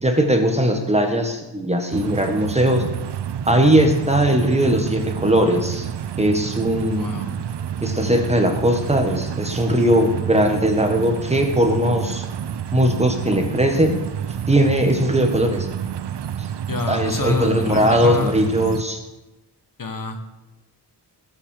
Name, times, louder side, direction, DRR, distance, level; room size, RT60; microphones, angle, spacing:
voice 1, 0.0-2.8 3.5-5.9 6.2-7.1 7.8-12.2 12.7-14.0 14.5-15.7 16.9-19.0, equal, 15° right, 4 dB, 1.7 m, -19 dB
sound 1, 1.9-18.8, right 9 dB, 70° right, 0.7 m, -29 dB
voice 2, 7.0-7.4 16.7-18.3 19.8-20.3, left 3 dB, 50° left, 6 dB, 1.4 m, -27 dB
19.0 x 6.8 x 6.7 m, 0.98 s
wide cardioid pair, 165°, 43 cm